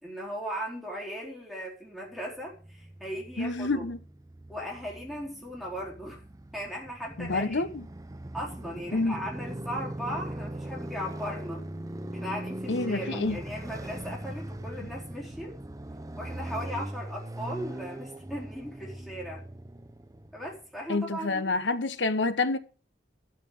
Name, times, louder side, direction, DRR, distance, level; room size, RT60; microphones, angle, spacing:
voice 1, 0.0-3.8 4.5-6.2 6.5-7.6 8.3-11.6 12.1-15.5 16.2-19.4 20.3-21.6, equal, ahead, 4.1 m, -38 dB
Motorcycle, 2.5-20.7, right 1 dB, 20° right, 0.6 m, -40 dB
voice 2, 3.4-4.0 7.2-7.9 8.9-9.2 12.7-13.4 20.9-22.6, left 3 dB, 90° left, 1.1 m, -28 dB
12.5 x 5.9 x 8.3 m
head